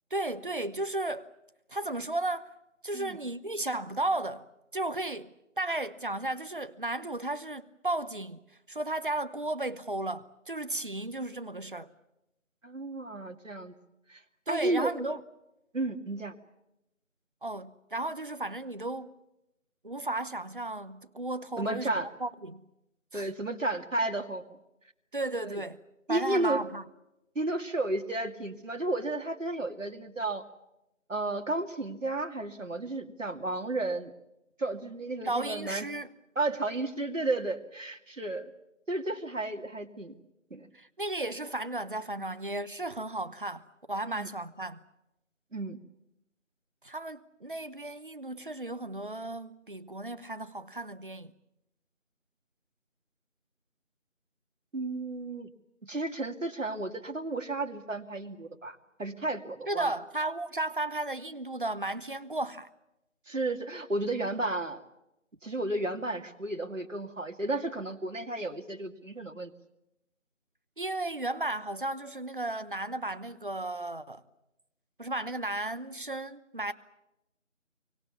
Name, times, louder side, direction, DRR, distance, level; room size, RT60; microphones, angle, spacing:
voice 1, 0.1-1.3 1.7-2.5 2.8-4.5 4.7-8.4 8.7-11.9 14.5-15.2 17.4-19.1 19.8-22.7 23.1-23.3 25.1-25.8 26.1-26.8 35.2-36.1 40.7-44.8 46.8-51.3 59.7-62.7 70.8-74.2 75.0-76.7, right 2 dB, 40° right, 1.0 m, -34 dB
voice 2, 12.6-13.8 14.1-14.2 14.5-14.9 15.7-16.3 21.6-22.1 23.1-24.6 25.4-25.6 26.1-26.6 27.3-30.4 31.1-34.1 34.6-35.9 36.4-38.5 38.9-40.1 40.5-40.7 44.1-44.3 45.5-45.8 54.7-55.5 55.9-59.9 63.3-64.8 65.4-69.5, right 2 dB, 70° right, 2.6 m, -33 dB
26.5 x 24.5 x 7.2 m
figure-of-eight pair, 170°, 39 cm